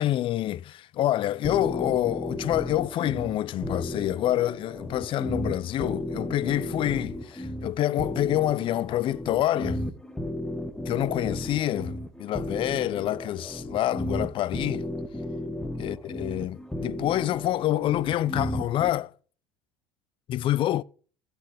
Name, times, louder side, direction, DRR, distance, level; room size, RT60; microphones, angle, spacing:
voice 1, 0.0-9.8 10.9-14.9 15.7-19.1 20.3-20.8, left 13 dB, 45° left, 0.4 m, -27 dB
sound 1, 1.4-18.9, left 1 dB, 5° left, 1.4 m, -34 dB
15.5 x 6.1 x 3.4 m
hypercardioid pair, 80°, 12 cm